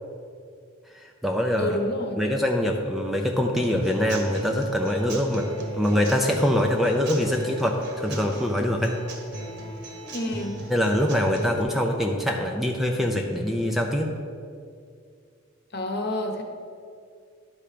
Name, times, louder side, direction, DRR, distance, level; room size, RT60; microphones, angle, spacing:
voice 1, 0.9-1.8 2.2-5.5 5.7-9.0 10.7-14.2, equal, ahead, 2 dB, 0.4 m, -24 dB
voice 2, 1.6-2.2 10.1-10.6 15.7-16.4, left 1 dB, 50° left, 3 dB, 1.0 m, -28 dB
Human voice / Acoustic guitar / Drum, 3.6-11.6, right 1 dB, 55° right, 1.2 m, -37 dB
11.0 x 4.4 x 5.0 m, 2.3 s
head